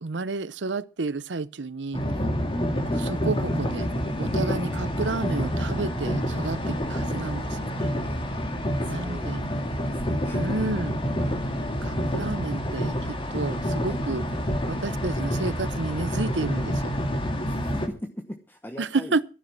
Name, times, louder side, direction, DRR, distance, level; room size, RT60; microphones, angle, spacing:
voice 1, 0.0-2.0 2.9-3.9 4.2-7.9 8.9-9.5 10.3-11.0 11.8-14.2 14.7-17.0 18.8-19.2, right 3 dB, 80° right, 0.8 m, -31 dB
sound 1, 1.9-17.9, equal, 30° left, 2.1 m, -28 dB
voice 2, 8.9-9.4 9.9-10.4 12.1-12.4 13.9-14.0 17.5-19.2, equal, 10° left, 1.1 m, -39 dB
13.5 x 11.0 x 6.0 m
head